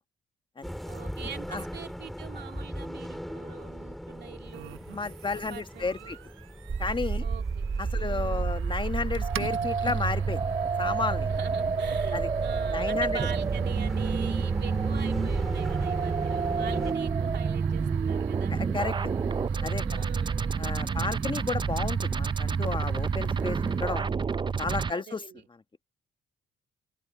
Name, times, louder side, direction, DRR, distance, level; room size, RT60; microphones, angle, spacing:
sound 1, 0.6-16.9, equal, ahead, 4.0 m, -40 dB
voice 1, 0.8-4.8 5.5-6.1 7.2-7.7 8.0-8.5 11.3-18.6 19.8-20.4 20.9-21.3 24.9-25.5, right 8 dB, 60° right, 2.6 m, -44 dB
sound 2, 4.5-24.1, right 17 dB, 90° right, 1.1 m, -45 dB
voice 2, 4.9-6.2 6.8-7.2 7.8-10.4 10.8-11.3 12.1-12.3 12.7-13.2 18.5-19.1 19.6-20.0 20.6-24.1 24.6-25.2, left 4 dB, 25° left, 1.4 m, -32 dB
sound 3, 6.7-24.9, right 5 dB, 25° right, 0.5 m, -29 dB
open air
cardioid pair, 90°, 20 cm